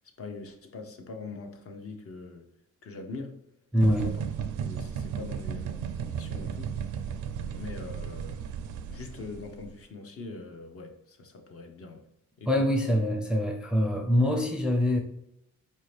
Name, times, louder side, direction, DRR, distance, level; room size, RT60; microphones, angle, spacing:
voice 1, 0.2-2.5 2.8-3.5 3.9-4.2 4.6-6.8 7.4-8.4 8.9-12.1 12.4-12.7, left 3 dB, 50° left, 4 dB, 0.7 m, -42 dB
voice 2, 3.7-4.1 12.5-15.0, equal, 5° right, 1 dB, 0.4 m, -24 dB
sound 1, 3.8-9.7, right 8 dB, 80° right, 0.4 m, -35 dB
sound 2, 5.2-8.4, right 6 dB, 90° left, 1.3 m, -52 dB
4.2 x 2.7 x 3.2 m, 0.84 s
cardioid pair, 90°, 30 cm